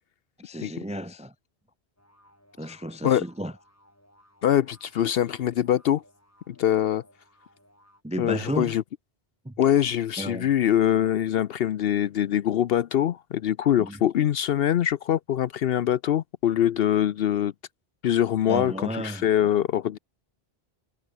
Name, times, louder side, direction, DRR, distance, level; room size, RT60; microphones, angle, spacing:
voice 1, 0.4-1.3 2.6-3.5 8.0-8.7 9.4-9.5 10.2-10.5 13.8-14.0 18.5-19.5, equal, 10° right, 0.6 m, -33 dB
sound 1, 2.0-8.0, equal, 15° left, 7.6 m, -60 dB
voice 2, 4.4-6.0 6.5-7.0 8.2-8.8 9.6-17.5 18.0-20.0, left 10 dB, 70° left, 0.8 m, -23 dB
omnidirectional pair, 1.0 m